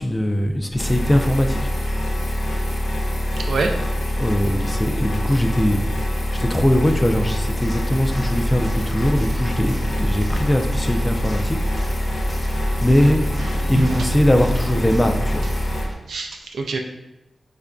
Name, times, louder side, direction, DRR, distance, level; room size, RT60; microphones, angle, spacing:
voice 1, 0.0-1.7 4.2-5.8 6.3-11.6 12.1-12.5 12.8-13.2 13.7-15.5, equal, 15° left, 5 dB, 0.4 m, -21 dB
sound 1, 0.8-15.8, equal, 70° left, 0.7 m, -24 dB
voice 2, 3.4-3.8 13.4-14.1 16.1-16.8, right 3 dB, 85° right, 3 dB, 0.3 m, -26 dB
sound 2, 7.6-15.9, equal, 40° right, 0.7 m, -33 dB
4.5 x 2.5 x 2.2 m, 0.96 s
wide cardioid pair, 75°, 0 cm